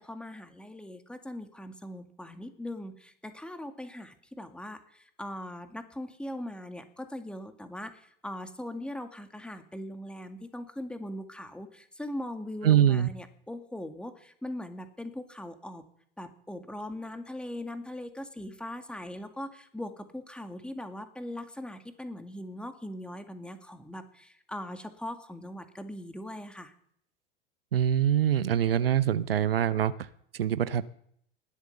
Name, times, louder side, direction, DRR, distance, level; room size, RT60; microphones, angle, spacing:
voice 1, 0.0-15.8 16.2-26.7, left 1 dB, 5° left, 8 dB, 2.0 m, -40 dB
voice 2, 12.6-13.1 27.7-29.9 30.3-30.9, right 10 dB, 75° right, 16 dB, 0.7 m, -24 dB
20.0 x 8.2 x 6.9 m, 0.68 s
figure-of-eight pair, 80°, 29 cm